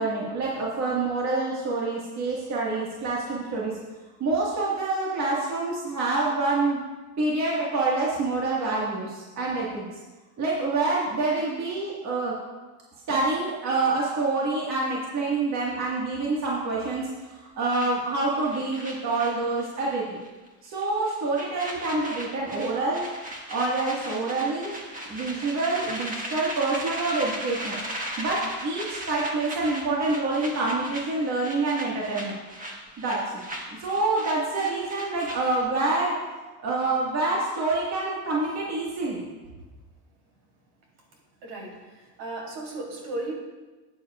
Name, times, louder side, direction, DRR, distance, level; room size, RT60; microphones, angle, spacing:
voice 1, 0.0-3.7 4.2-6.8 7.2-9.9 10.4-12.3 13.1-20.2 20.6-23.0 23.5-24.7 25.1-27.8 28.2-32.3 33.0-33.4 33.8-36.1 36.6-39.2, right 3 dB, 35° right, -5 dB, 1.8 m, -27 dB
sound 1, 17.7-20.0 20.2-20.5 20.8-35.7, right 1 dB, 15° right, 1.4 m, -37 dB
voice 2, 41.4-43.3, right 2 dB, 65° right, -1 dB, 3.4 m, -35 dB
13.0 x 9.2 x 2.4 m, 1.2 s
cardioid pair, 135°, 47 cm